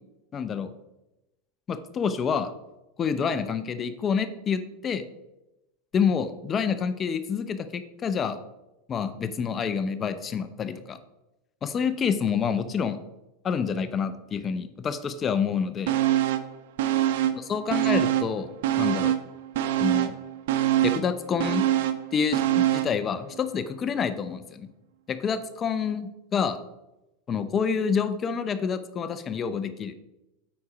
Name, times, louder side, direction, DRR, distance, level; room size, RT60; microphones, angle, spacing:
voice 1, 0.3-0.7 1.7-2.5 3.0-5.0 5.9-8.4 8.9-11.0 11.6-13.0 13.4-15.9 17.3-18.5 18.8-19.2 19.8-20.1 20.8-21.6 22.1-24.7 25.1-26.6 27.3-29.9, left 6 dB, 25° left, 11 dB, 0.7 m, -28 dB
sound 1, 15.9-16.5 16.8-18.3 18.6-23.0 23.3-23.4, right 13 dB, 75° right, 0.7 m, -24 dB
8.7 x 4.3 x 5.0 m, 0.94 s
supercardioid pair, 125°, 0 cm